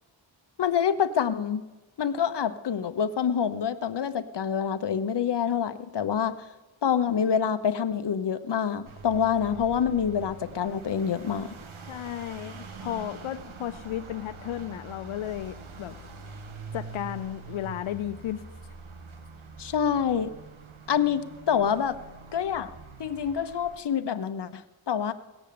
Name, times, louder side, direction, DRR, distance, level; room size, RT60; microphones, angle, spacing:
voice 1, 0.6-1.6 2.0-6.3 6.8-11.6 19.6-20.3 20.9-22.0 22.3-22.7 23.0-25.1, left 8 dB, 60° left, 11 dB, 0.9 m, -26 dB
sound 1, 8.8-23.8, right 4 dB, 80° right, 1.6 m, -44 dB
voice 2, 11.9-15.9 16.7-18.4, left 11 dB, 90° left, 10 dB, 0.6 m, -34 dB
17.5 x 7.2 x 8.5 m, 1.1 s
wide cardioid pair, 75°, 47 cm